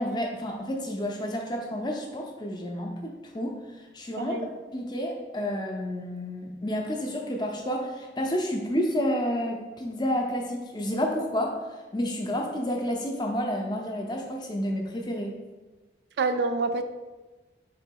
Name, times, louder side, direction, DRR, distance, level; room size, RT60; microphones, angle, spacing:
voice 1, 0.0-15.3, equal, 25° left, 1 dB, 0.4 m, -30 dB
voice 2, 4.2-4.5 16.2-16.8, right 3 dB, 65° right, 9 dB, 0.3 m, -27 dB
3.7 x 2.9 x 4.5 m, 1.2 s
head